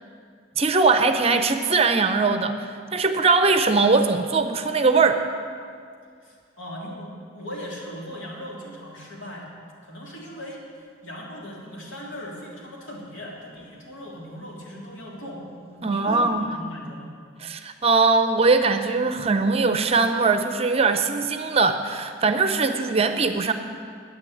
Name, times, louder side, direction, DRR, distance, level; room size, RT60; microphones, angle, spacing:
voice 1, 0.6-5.2 15.8-16.5 17.4-23.5, right 4 dB, 30° right, 8 dB, 0.6 m, -21 dB
voice 2, 6.2-9.5 9.8-17.1, equal, 75° left, -3 dB, 3.2 m, -38 dB
10.5 x 9.1 x 9.2 m, 2.2 s
head